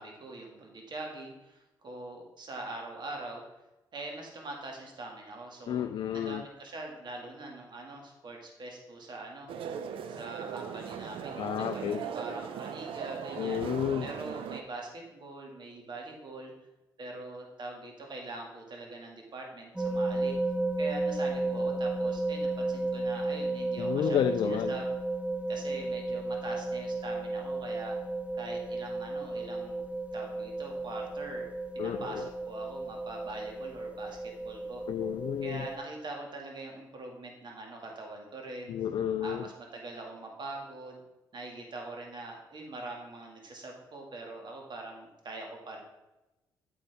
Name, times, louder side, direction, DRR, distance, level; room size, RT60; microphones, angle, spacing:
voice 1, 0.0-3.4 3.9-9.5 10.1-13.6 14.0-16.5 17.0-20.4 20.8-24.9 25.5-28.0 28.3-29.8 30.1-31.4 31.7-34.9 35.4-38.7 39.2-41.0 41.3-45.8, right 2 dB, 50° right, 1 dB, 2.1 m, -43 dB
voice 2, 5.7-6.4 11.4-12.1 13.4-14.1 23.8-24.7 31.8-32.3 34.9-35.6 38.7-39.5, left 9 dB, 55° left, 10 dB, 0.4 m, -31 dB
sound 1, 9.5-14.6, right 7 dB, 65° right, 0.6 m, -39 dB
sound 2, 19.8-35.8, right 2 dB, 15° right, 1.2 m, -33 dB
8.9 x 6.9 x 3.5 m, 1.0 s
hypercardioid pair, 45°, 10 cm